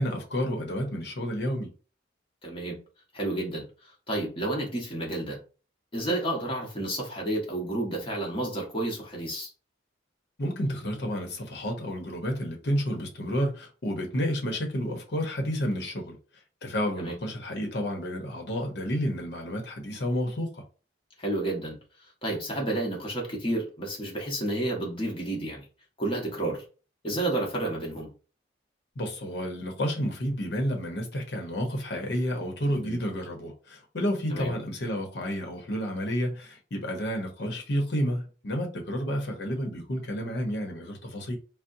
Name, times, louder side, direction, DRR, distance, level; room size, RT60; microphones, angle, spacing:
voice 1, 0.0-1.7 10.4-16.2 16.6-20.6 29.0-41.4, equal, 60° left, 0.9 m, -30 dB
voice 2, 2.4-2.8 3.1-3.6 4.1-5.4 5.9-9.5 17.0-17.2 21.2-21.8 22.2-25.6 26.0-26.6 27.0-28.1 32.7-33.0 34.3-34.5, right 1 dB, 30° left, 1.1 m, -30 dB
4.1 x 2.1 x 2.6 m
head